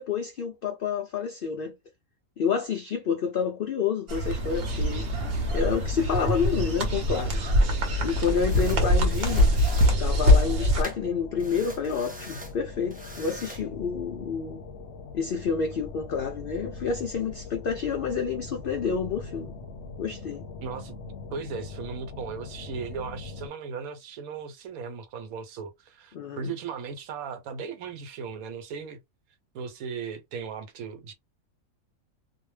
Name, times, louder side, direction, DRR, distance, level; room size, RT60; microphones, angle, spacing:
voice 1, 0.0-1.7 2.4-5.1 5.5-7.4 8.0-9.5 10.0-14.6 15.1-19.5 20.0-20.5 26.1-26.5, left 6 dB, 80° left, 0.4 m, -29 dB
sound 1, 4.1-10.8, left 1 dB, 50° right, 0.9 m, -23 dB
sound 2, 4.4-23.5, left 4 dB, 60° left, 0.9 m, -42 dB
sound 3, 6.5-6.7 7.7-7.8 8.5-8.8 9.1-10.0 10.8-11.0 11.4-12.6 12.9-13.6, right 1 dB, 10° right, 0.4 m, -44 dB
voice 2, 20.6-21.0 21.3-29.0 29.5-31.1, right 5 dB, 80° right, 1.1 m, -37 dB
2.5 x 2.1 x 3.2 m
omnidirectional pair, 1.5 m